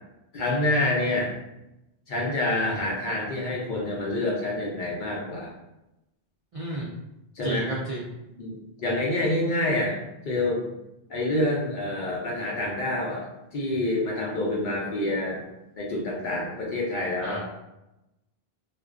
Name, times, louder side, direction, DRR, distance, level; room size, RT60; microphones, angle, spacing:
voice 1, 0.3-1.3 2.1-5.5 7.4-7.7 8.4-10.0 10.2-10.6 11.1-13.3 13.5-15.4 15.8-17.4, left 1 dB, 55° left, -3 dB, 0.6 m, -27 dB
voice 2, 6.5-6.9 7.4-8.0 17.2-17.4, right 1 dB, 60° right, -4 dB, 0.3 m, -31 dB
2.4 x 2.2 x 2.3 m, 0.93 s
omnidirectional pair, 1.1 m